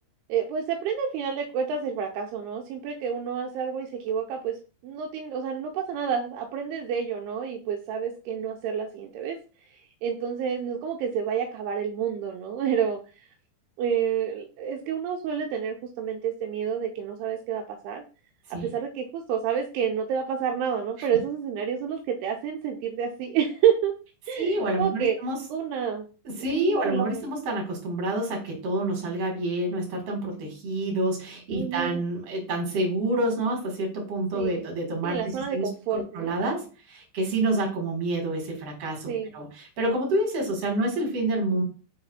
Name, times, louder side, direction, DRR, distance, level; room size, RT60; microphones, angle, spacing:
voice 1, 0.3-4.6 4.8-9.4 9.7-13.0 13.8-18.0 18.5-23.9 24.3-25.2 25.5-26.1 26.5-27.3 31.5-32.0 34.3-34.6 35.0-36.3 39.1-39.3, right 8 dB, 85° right, 3 dB, 2.4 m, -29 dB
voice 2, 24.4-25.4 26.2-41.6, right 1 dB, 35° right, 0 dB, 3.2 m, -28 dB
6.7 x 3.9 x 5.7 m, 0.35 s
omnidirectional pair, 5.3 m